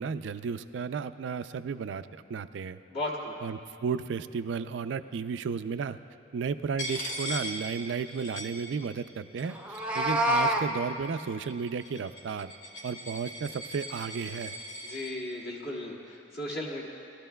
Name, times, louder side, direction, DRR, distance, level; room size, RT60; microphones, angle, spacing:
voice 1, 0.0-2.8 3.4-6.0 6.3-12.5 12.8-14.5, right 5 dB, 70° right, 11 dB, 0.4 m, -33 dB
voice 2, 2.9-3.4 14.8-16.9, left 1 dB, 60° left, -4 dB, 1.9 m, -35 dB
Coin (dropping), 6.8-9.1 9.4-10.2 10.9-15.1, equal, 80° left, 1.9 m, -40 dB
Meow, 9.6-10.6, right 1 dB, 5° right, 0.7 m, -26 dB
20.0 x 13.0 x 2.3 m, 2.6 s
head